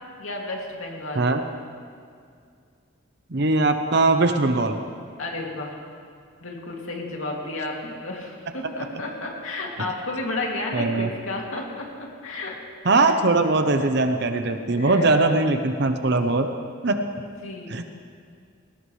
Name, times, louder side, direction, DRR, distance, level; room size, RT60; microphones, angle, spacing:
voice 1, 0.2-1.3 5.2-5.8 6.4-12.6 13.0-13.1 14.5-15.1 17.4-17.8, left 2 dB, 90° left, -1 dB, 2.6 m, -32 dB
voice 2, 3.3-4.8 10.7-11.1 12.8-16.5 16.8-17.0 17.7-17.8, right 3 dB, 55° right, 7 dB, 0.8 m, -20 dB
19.0 x 17.5 x 3.3 m, 2.2 s
head